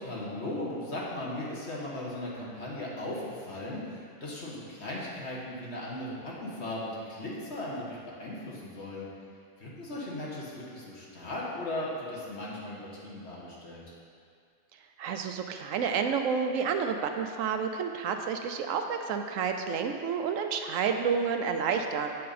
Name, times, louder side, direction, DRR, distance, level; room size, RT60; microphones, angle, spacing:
voice 1, 0.0-9.1 9.6-13.8, left 1 dB, 55° left, -5 dB, 1.7 m, -37 dB
voice 2, 15.0-22.1, right 6 dB, 80° right, 5 dB, 1.0 m, -30 dB
7.6 x 6.6 x 4.1 m, 2.2 s
omnidirectional pair, 1.4 m